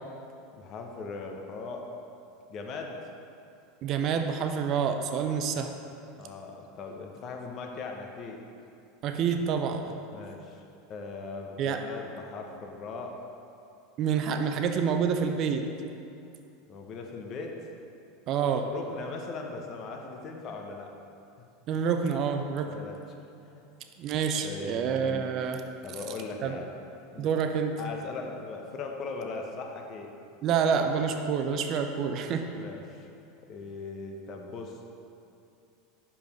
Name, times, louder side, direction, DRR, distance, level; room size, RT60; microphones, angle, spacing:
voice 1, 0.6-1.8 2.5-2.9 6.2-8.4 10.1-10.6 10.9-13.2 16.7-17.6 18.6-20.9 22.6-23.0 23.4-23.6 24.4-25.3 25.8-26.7 27.1-27.3 27.8-30.1 32.5-33.1 33.5-34.8, left 4 dB, 45° left, 2 dB, 0.9 m, -39 dB
voice 2, 3.8-5.7 9.0-10.0 11.6-11.8 14.0-15.7 18.3-18.7 21.7-22.8 24.0-25.6 26.4-26.6 27.2-27.8 30.4-32.5, right 6 dB, 50° right, 6 dB, 0.5 m, -28 dB
5.3 x 4.8 x 5.1 m, 2.6 s
hypercardioid pair, 100°, 0 cm